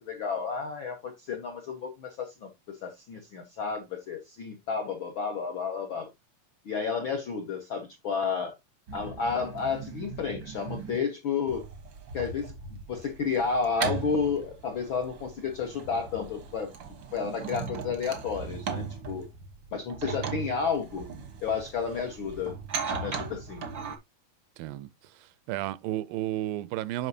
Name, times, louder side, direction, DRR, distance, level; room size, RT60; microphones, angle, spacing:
voice 1, 0.0-2.5 2.8-6.1 6.6-8.5 8.9-11.6 12.1-16.7 17.1-19.2 19.7-21.1 21.4-22.5 22.9-23.6, left 5 dB, 70° left, 1.2 m, -31 dB
sound 1, 8.9-11.0 11.5-24.0, right 6 dB, 65° right, 1.1 m, -38 dB
voice 2, 24.6-24.9 25.2-27.1, right 15 dB, 85° right, 2.3 m, -33 dB
9.2 x 5.8 x 2.7 m
omnidirectional pair, 4.0 m